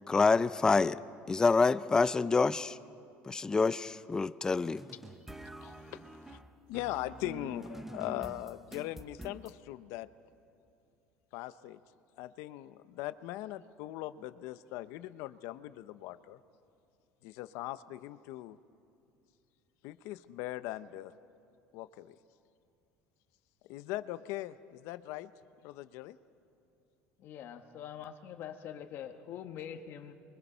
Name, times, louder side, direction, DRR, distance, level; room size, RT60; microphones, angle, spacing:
voice 1, 0.1-1.0 1.3-2.8 3.3-4.8, left 4 dB, 15° left, 15 dB, 0.4 m, -27 dB
sound 1, 4.6-9.5, right 1 dB, 5° right, 0.8 m, -47 dB
voice 2, 5.6-6.4 6.7-10.1 11.3-11.8 12.2-16.4 17.2-18.6 19.8-21.1 21.7-22.2 23.7-25.3 25.6-26.2, left 15 dB, 75° left, 13 dB, 0.7 m, -40 dB
voice 3, 27.2-30.1, left 9 dB, 50° left, 6 dB, 1.3 m, -44 dB
29.0 x 23.0 x 5.6 m, 2.6 s
cardioid pair, 150°, 5 cm